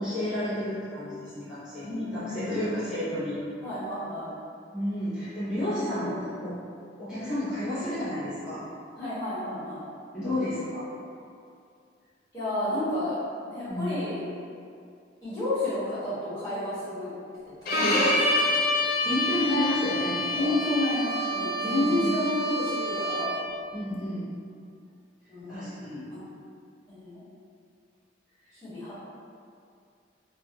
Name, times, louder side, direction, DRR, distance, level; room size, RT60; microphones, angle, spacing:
voice 1, 0.0-3.4 4.7-6.6 7.0-8.6 10.1-10.9 13.7-13.9 17.8-18.0 18.8-20.5 21.6-22.1 23.7-24.3 25.5-26.1, left 1 dB, 5° right, -15 dB, 0.8 m, -31 dB
voice 2, 1.8-2.6 3.6-4.3 7.2-7.4 8.9-9.8 12.3-13.2 13.5-14.2 15.2-17.1 17.4-18.6 20.4-23.4 25.3-25.7 26.1-26.2 26.9-27.2 28.5-29.1, left 1 dB, 20° left, -16 dB, 1.3 m, -31 dB
Bowed string instrument, 17.7-23.5, left 1 dB, 50° left, 0.4 m, -27 dB
2.6 x 2.5 x 2.3 m, 2.4 s
head